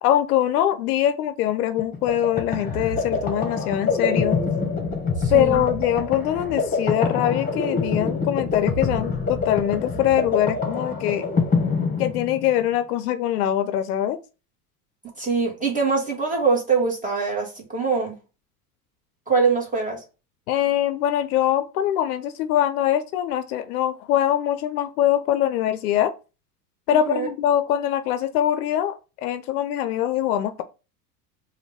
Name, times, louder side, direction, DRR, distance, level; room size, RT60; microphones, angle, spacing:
voice 1, 0.0-4.4 5.3-11.2 12.0-14.2 20.5-26.1 26.9-29.0 29.2-30.6, left 11 dB, 70° left, 0.6 m, -23 dB
sound 1, 1.8-12.6, left 4 dB, 20° left, 1.4 m, -25 dB
voice 2, 5.2-5.6 15.2-18.2 19.3-20.0 26.9-27.3, right 5 dB, 15° right, 1.7 m, -23 dB
3.9 x 2.6 x 3.5 m
hypercardioid pair, 90°, 47 cm